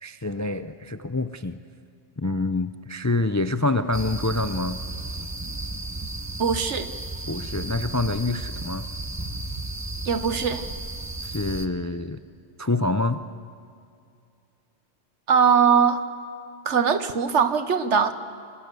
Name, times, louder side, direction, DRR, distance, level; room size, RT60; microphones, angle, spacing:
voice 1, 0.0-1.6 2.2-4.8 7.3-8.9 11.2-12.2 12.6-13.2, left 2 dB, 20° left, 11 dB, 0.4 m, -26 dB
sound 1, 3.9-11.7, right 2 dB, 15° right, 0.9 m, -34 dB
voice 2, 6.4-6.9 10.0-10.6 15.3-16.0 16.6-18.1, right 6 dB, 65° right, 11 dB, 1.4 m, -21 dB
28.5 x 23.0 x 6.9 m, 2.5 s
omnidirectional pair, 1.3 m